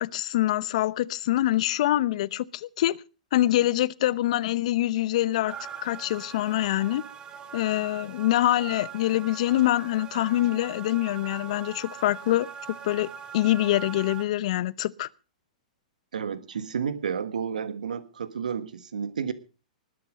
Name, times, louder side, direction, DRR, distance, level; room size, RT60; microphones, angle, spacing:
voice 1, 0.0-3.0 3.3-5.6 5.8-7.0 7.5-12.5 12.8-15.1, left 14 dB, 60° left, 0.8 m, -25 dB
sound 1, 5.5-14.2, right 7 dB, 20° right, 2.5 m, -42 dB
voice 2, 16.1-19.3, right 7 dB, 80° right, 1.5 m, -31 dB
20.0 x 10.0 x 5.2 m
hypercardioid pair, 115°, 4 cm